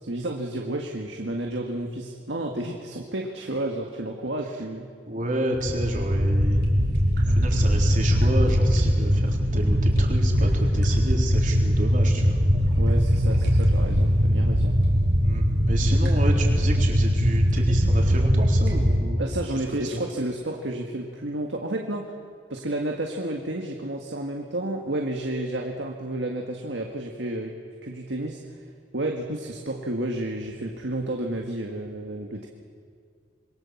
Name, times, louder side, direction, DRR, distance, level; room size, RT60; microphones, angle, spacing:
voice 1, 0.0-4.9 12.8-14.7 19.2-22.1 22.5-27.5 27.8-28.6 28.9-32.5, right 1 dB, 80° right, 1 dB, 1.9 m, -31 dB
voice 2, 5.1-6.6 7.2-12.4 15.2-19.2 19.9-20.0, right 1 dB, 45° right, 0 dB, 4.0 m, -30 dB
sound 1, 5.5-19.0, equal, 65° right, 4.2 m, -21 dB
26.5 x 22.0 x 7.3 m, 2.1 s
head